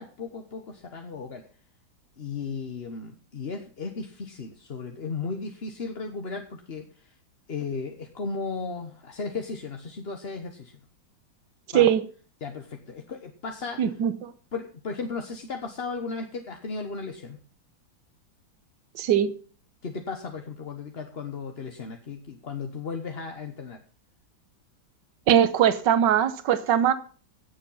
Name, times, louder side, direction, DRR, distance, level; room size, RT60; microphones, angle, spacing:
voice 1, 0.0-1.4 2.2-6.9 7.5-10.7 11.7-11.9 12.4-13.8 14.5-17.4 19.8-23.8, left 4 dB, 35° left, 1.1 m, -35 dB
voice 2, 13.8-14.3 19.0-19.3 25.3-26.9, right 10 dB, 65° right, 1.6 m, -21 dB
16.5 x 7.3 x 5.6 m
omnidirectional pair, 2.2 m